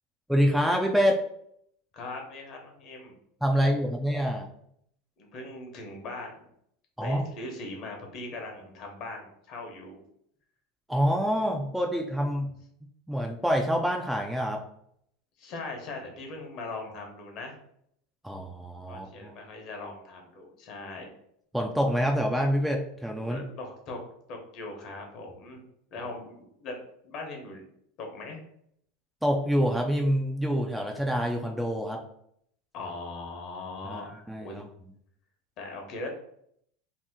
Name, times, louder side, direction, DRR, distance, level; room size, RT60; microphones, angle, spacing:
voice 1, 0.3-1.2 3.4-4.5 7.0-7.3 10.9-12.6 13.1-14.6 18.2-19.3 21.5-23.4 29.2-32.0 33.8-34.6, equal, 5° right, 1 dB, 0.4 m, -26 dB
voice 2, 1.9-3.1 3.6-3.7 5.2-6.5 7.0-10.0 15.4-17.6 18.9-21.1 23.2-24.0 24.3-25.6 25.9-27.7 28.0-28.4 32.7-34.1 34.4-34.6 35.6-36.1, left 2 dB, 50° left, 2 dB, 0.9 m, -40 dB
2.8 x 2.0 x 3.5 m, 0.70 s
supercardioid pair, 115°, 0 cm